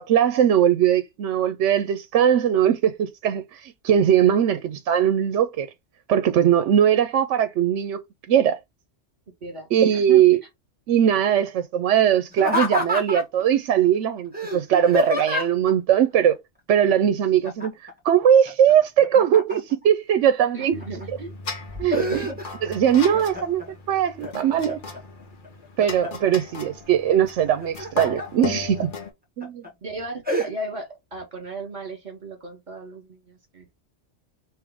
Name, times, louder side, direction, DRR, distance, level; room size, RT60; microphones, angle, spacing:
voice 1, 0.0-5.7 6.1-8.0 8.3-8.6 9.7-10.4 10.9-16.3 16.7-17.7 18.0-20.7 21.8-22.3 22.6-24.8 25.8-28.9 29.4-29.6, right 9 dB, 80° right, 0.9 m, -20 dB
voice 2, 9.4-10.3 20.5-21.3 21.9-22.3 29.8-33.7, right 2 dB, 40° right, 1.9 m, -36 dB
Laughter, 12.3-13.4 14.3-15.7 17.4-17.9 18.2-19.8 20.4-21.0 21.5-22.7 23.1-23.7 24.2-25.0 25.4-26.3 27.5-28.3 28.8-28.9 29.4-29.7 30.2-30.5, left 2 dB, 10° right, 1.5 m, -28 dB
sound 1, 20.7-29.1, left 4 dB, 45° left, 1.0 m, -37 dB
3.6 x 3.0 x 4.8 m
omnidirectional pair, 1.2 m